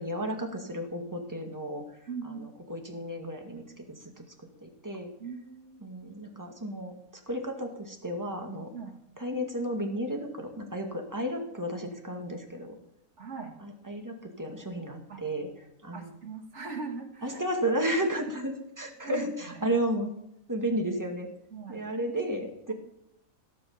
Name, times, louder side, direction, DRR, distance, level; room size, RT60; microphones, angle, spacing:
voice 1, 0.0-1.8 2.2-3.6 4.0-4.2 4.6-5.1 5.8-6.9 7.3-8.7 9.2-12.7 13.6-15.5 15.8-16.1 17.2-20.1 20.5-21.3 21.7-22.7, right 1 dB, 15° right, 2 dB, 2.1 m, -33 dB
voice 2, 2.1-2.4 5.2-5.8 8.7-9.0 13.2-13.5 15.1-15.2 15.9-17.4 19.0-19.8 21.5-21.8, right 5 dB, 55° right, 3 dB, 2.4 m, -40 dB
16.5 x 8.2 x 7.3 m, 0.78 s
omnidirectional pair, 1.5 m